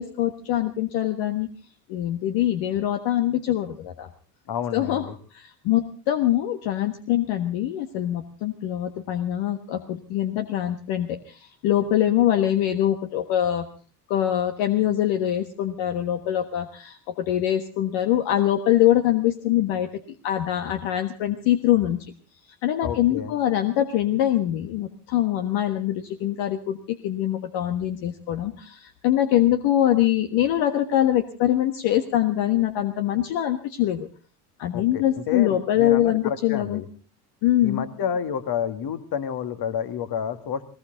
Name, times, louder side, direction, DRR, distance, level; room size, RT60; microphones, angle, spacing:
voice 1, 0.0-1.5 1.9-4.1 4.7-5.0 5.3-13.7 14.1-19.9 20.2-22.1 22.6-34.1 34.6-36.8 37.4-37.8, left 12 dB, 65° left, 7 dB, 1.5 m, -23 dB
voice 2, 4.5-5.2 22.8-23.3 34.7-36.9 37.6-40.6, left 8 dB, 50° left, 10 dB, 2.1 m, -30 dB
19.5 x 19.0 x 3.9 m, 0.38 s
hypercardioid pair, 75°, 47 cm